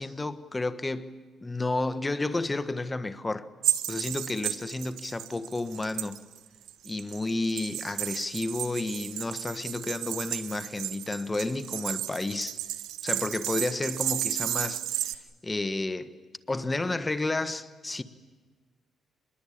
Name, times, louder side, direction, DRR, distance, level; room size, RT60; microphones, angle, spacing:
voice 1, 0.0-3.5 3.9-6.2 6.8-12.6 13.0-16.1 16.5-18.0, left 2 dB, 20° left, 1.2 m, -31 dB
sound 1, 3.6-6.4 6.7-15.2, right 13 dB, 90° right, 1.0 m, -33 dB
25.0 x 21.5 x 8.6 m
cardioid pair, 90°, 0 cm